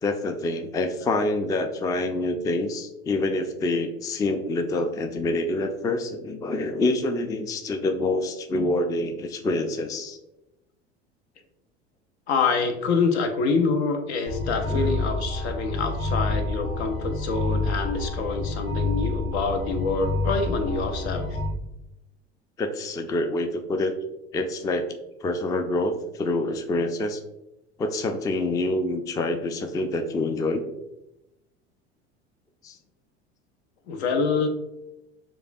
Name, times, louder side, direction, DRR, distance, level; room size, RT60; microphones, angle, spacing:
voice 1, 0.0-10.2 14.5-14.9 19.1-19.2 22.6-23.9 24.3-24.9 25.2-27.2 27.8-30.7 32.6-32.8, left 2 dB, 10° left, 7 dB, 0.3 m, -26 dB
voice 2, 12.3-21.3 33.9-34.5, left 4 dB, 75° left, 6 dB, 0.7 m, -26 dB
sound 1, 14.3-21.5, left 2 dB, 35° left, 1.4 m, -28 dB
6.6 x 2.3 x 2.5 m, 0.94 s
hypercardioid pair, 70°, 33 cm